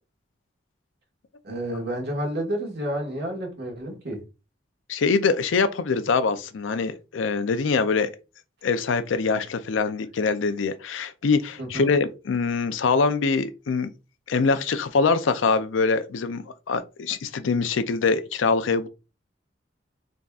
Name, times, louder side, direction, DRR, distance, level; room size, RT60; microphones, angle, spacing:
voice 1, 1.4-4.2 11.6-11.9, right 1 dB, 60° right, 1.6 m, -30 dB
voice 2, 4.9-8.1 8.6-13.9 14.3-18.9, left 4 dB, 80° left, 0.5 m, -24 dB
3.9 x 3.5 x 2.3 m
head